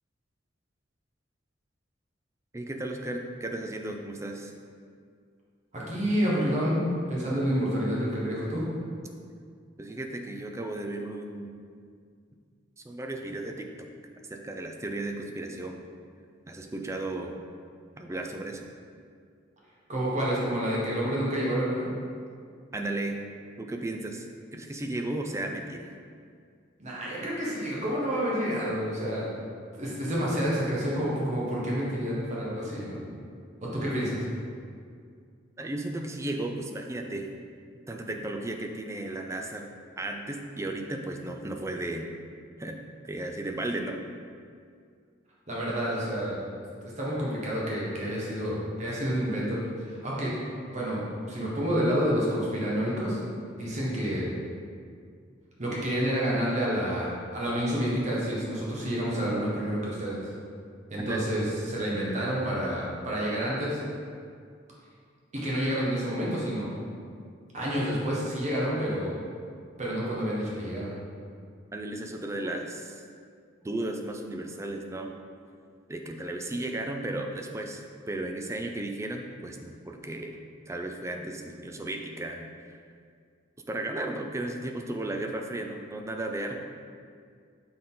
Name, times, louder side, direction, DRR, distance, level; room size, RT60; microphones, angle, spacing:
voice 1, 2.5-4.5 9.8-11.5 12.8-13.9 14.3-15.8 16.5-17.4 18.0-18.7 22.7-23.2 23.6-24.3 24.5-25.9 35.6-37.3 37.9-39.7 40.0-42.0 42.6-42.8 43.0-44.0 61.0-61.3 71.7-73.0 73.6-75.1 75.9-80.4 80.7-82.8 83.7-86.6, right 2 dB, 15° right, 3 dB, 0.4 m, -34 dB
voice 2, 5.7-6.8 7.1-8.6 19.9-21.9 26.8-29.3 29.7-33.0 33.6-34.2 45.5-46.4 46.8-49.6 49.9-50.3 50.7-53.2 53.5-54.2 55.6-60.3 60.9-63.8 65.4-66.7 67.5-69.1 69.8-70.9, equal, 40° right, -6 dB, 1.2 m, -29 dB
6.5 x 3.9 x 3.8 m, 2.2 s
head